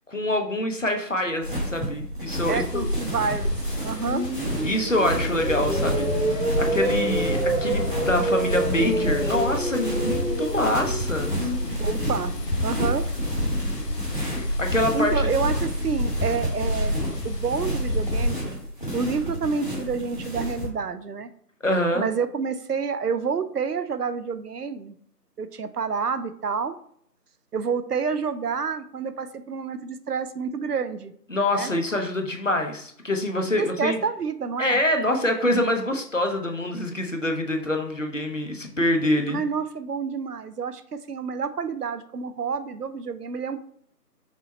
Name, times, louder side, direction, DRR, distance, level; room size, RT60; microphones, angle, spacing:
voice 1, 0.1-2.8 4.6-11.4 14.1-15.1 21.6-22.1 31.3-34.0 34.6-39.4, left 1 dB, 50° left, 4 dB, 0.7 m, -25 dB
sound 1, 1.4-20.7, equal, 30° left, 1.0 m, -32 dB
sound 2, 2.4-18.3, left 1 dB, 75° left, 1.0 m, -29 dB
voice 2, 2.5-3.6 3.8-4.3 11.8-12.3 12.6-13.0 14.9-18.5 18.9-21.3 21.9-25.0 25.4-26.8 27.5-31.1 31.5-31.7 33.6-34.8 39.3-43.6, right 5 dB, 70° right, 11 dB, 0.5 m, -28 dB
sound 3, 3.7-13.8, right 1 dB, 50° right, 0.8 m, -28 dB
6.1 x 2.1 x 4.0 m, 0.65 s
figure-of-eight pair, 175°, 49 cm